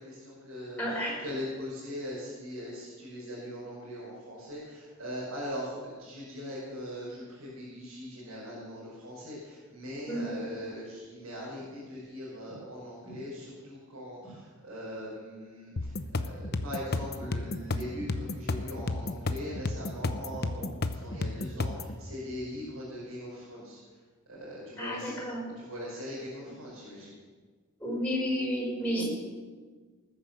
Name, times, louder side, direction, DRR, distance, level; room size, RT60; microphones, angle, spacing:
voice 1, 0.0-23.8 24.3-25.2 25.6-27.2, equal, 85° right, -7 dB, 5.5 m, -40 dB
voice 2, 0.8-1.2 10.1-10.3 13.1-13.2 14.2-14.3 24.8-25.4 27.8-29.0, equal, 10° left, -5 dB, 5.7 m, -31 dB
sound 1, 15.8-21.9, left 2 dB, 50° left, 0.8 m, -32 dB
19.5 x 10.0 x 6.9 m, 1.5 s
head